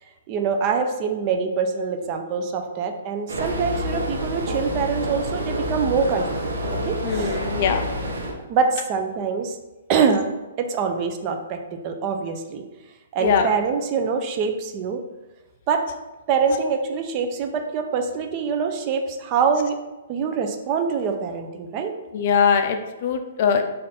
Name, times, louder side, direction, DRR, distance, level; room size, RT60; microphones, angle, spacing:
voice 1, 0.3-6.5 6.8-7.4 8.5-9.6 9.9-10.3 10.6-11.6 11.8-12.6 13.1-15.0 15.7-15.8 16.3-19.8 20.1-21.9, right 5 dB, 30° right, 5 dB, 0.4 m, -24 dB
sound 1, 3.3-8.3, equal, 85° right, 0.8 m, -28 dB
voice 2, 7.0-7.8 13.2-13.5 22.1-23.6, left 7 dB, 45° left, 6 dB, 0.4 m, -21 dB
4.2 x 2.5 x 4.2 m, 1.1 s
hypercardioid pair, 155°, 0 cm